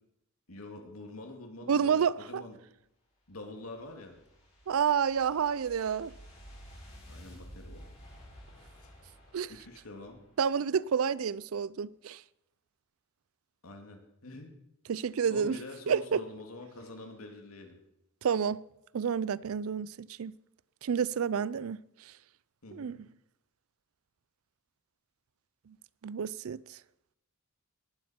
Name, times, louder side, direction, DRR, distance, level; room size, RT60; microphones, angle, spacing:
voice 1, 0.5-2.6 3.3-4.2 7.1-7.9 8.8-8.9 9.5-10.2 13.6-14.6 15.3-17.8 22.6-23.0, left 2 dB, 90° left, 2.5 m, -46 dB
voice 2, 1.7-2.4 4.7-6.1 9.3-9.5 10.4-12.2 14.9-15.6 15.9-16.2 18.2-18.6 18.9-20.4 20.8-21.8 22.7-23.0 25.7-25.8 26.0-26.8, right 7 dB, 75° right, 0.4 m, -29 dB
sound 1, 3.3-10.5, equal, 30° left, 5.1 m, -52 dB
18.5 x 12.0 x 4.4 m
head